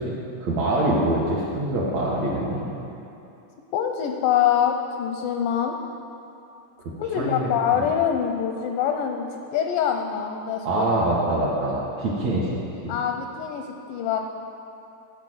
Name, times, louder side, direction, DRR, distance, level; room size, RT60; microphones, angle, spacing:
voice 1, 0.0-2.7 7.2-7.5 10.7-12.5 12.8-12.9, right 1 dB, 60° right, -6 dB, 1.9 m, -24 dB
voice 2, 3.7-5.8 7.0-10.9 12.9-14.2, left 8 dB, 80° left, 4 dB, 2.0 m, -24 dB
14.5 x 5.0 x 7.7 m, 2.8 s
omnidirectional pair, 4.5 m